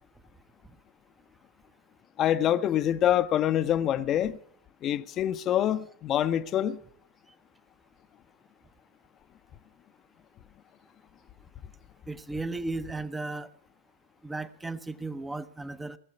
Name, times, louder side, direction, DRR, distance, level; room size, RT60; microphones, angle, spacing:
voice 1, 2.2-4.4 4.8-6.8, left 11 dB, 30° left, 0.7 m, -25 dB
voice 2, 12.1-13.5 14.2-16.0, right 3 dB, 10° right, 0.8 m, -35 dB
18.5 x 7.3 x 9.6 m
figure-of-eight pair, 90°, 0 cm